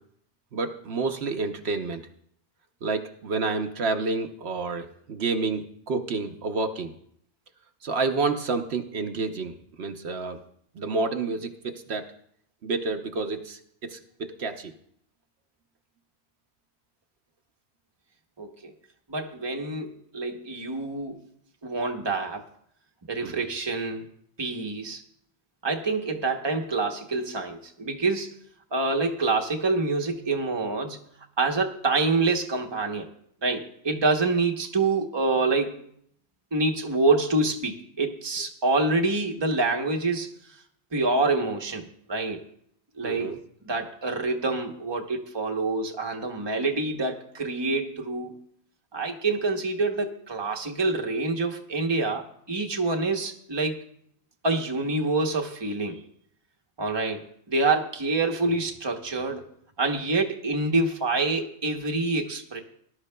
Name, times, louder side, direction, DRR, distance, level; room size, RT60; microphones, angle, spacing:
voice 1, 0.5-2.0 2.8-6.9 7.8-10.4 10.8-12.0 12.6-14.7 23.2-23.5 43.0-43.4, right 3 dB, 70° right, 6 dB, 1.0 m, -29 dB
voice 2, 18.4-18.7 19.1-21.2 21.6-22.4 23.1-24.0 24.4-25.0 25.6-28.3 28.7-31.0 31.4-33.1 33.4-35.8 36.5-40.3 40.9-42.4 43.0-43.3 43.6-48.3 48.9-53.8 54.4-56.0 56.8-59.4 59.8-62.6, right 3 dB, 25° right, 3 dB, 0.9 m, -26 dB
19.5 x 11.5 x 2.2 m, 0.69 s
omnidirectional pair, 1.1 m